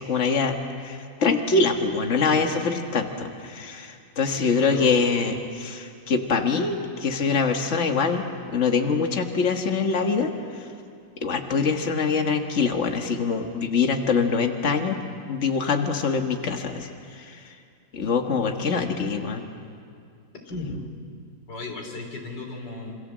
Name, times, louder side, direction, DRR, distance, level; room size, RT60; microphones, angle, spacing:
voice 1, 0.0-10.3 11.2-15.0 15.3-17.4 17.9-19.4, left 5 dB, 45° left, 4 dB, 1.8 m, -24 dB
voice 2, 4.2-5.3 20.5-20.8 21.5-23.0, left 2 dB, 85° left, 2 dB, 4.1 m, -35 dB
27.5 x 25.0 x 7.6 m, 2.3 s
omnidirectional pair, 1.9 m